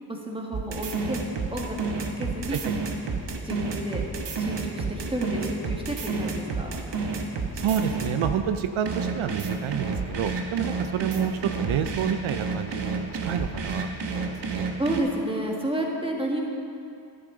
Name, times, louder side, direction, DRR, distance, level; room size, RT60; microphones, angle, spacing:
voice 1, 0.1-1.2 1.5-2.6 3.4-4.0 4.4-6.7 14.8-16.4, right 1 dB, 10° right, -1 dB, 1.7 m, -31 dB
sound 1, 0.5-8.4 8.9-15.0, right 4 dB, 60° right, 1.1 m, -30 dB
voice 2, 7.5-14.7, right 9 dB, 80° right, 8 dB, 0.6 m, -29 dB
10.0 x 9.5 x 3.9 m, 2.6 s
cardioid pair, 50°, 47 cm